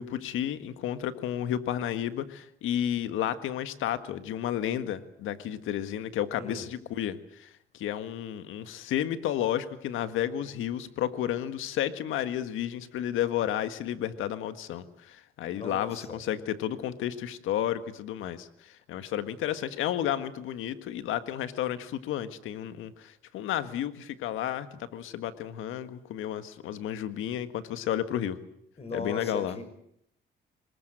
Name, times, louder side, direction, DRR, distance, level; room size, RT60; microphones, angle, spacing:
voice 1, 0.0-28.4 28.9-29.6, left 11 dB, 85° left, 11 dB, 1.7 m, -32 dB
voice 2, 6.4-6.7 15.5-16.2 28.8-29.6, left 3 dB, 30° left, 9 dB, 6.5 m, -37 dB
24.0 x 20.5 x 7.8 m, 0.73 s
cardioid pair, 90°, 20 cm